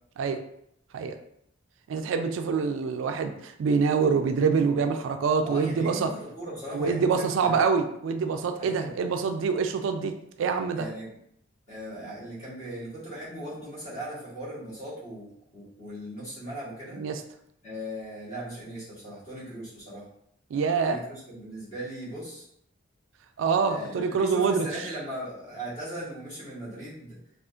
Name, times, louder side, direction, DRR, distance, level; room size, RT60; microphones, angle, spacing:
voice 1, 1.9-6.1 6.7-10.9 17.0-17.2 20.5-21.0 23.4-24.7, right 5 dB, 70° right, 6 dB, 0.3 m, -25 dB
voice 2, 5.4-7.6 8.6-8.9 10.7-11.1 11.7-17.0 17.6-20.1 20.8-22.4 23.7-27.2, equal, 35° left, -8 dB, 1.4 m, -38 dB
3.6 x 2.4 x 2.5 m, 0.73 s
head